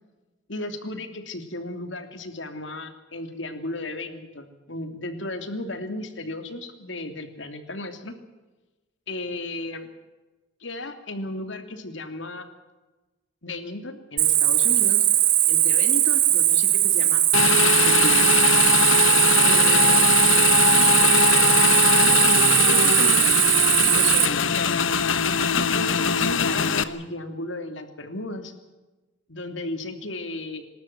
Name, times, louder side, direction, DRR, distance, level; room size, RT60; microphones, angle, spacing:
voice 1, 0.5-8.2 9.1-9.9 10.6-12.5 13.4-15.1 15.5-17.2 17.5-18.3 19.3-20.0 20.8-21.4 21.9-24.8 25.5-28.5 29.3-30.6, left 2 dB, 75° left, 7 dB, 3.0 m, -35 dB
Cricket, 14.2-24.3, right 12 dB, 45° right, 1.7 m, -19 dB
Motorcycle / Engine, 17.3-26.8, left 6 dB, 90° left, 1.2 m, -21 dB
27.0 x 12.5 x 9.4 m, 1.1 s
head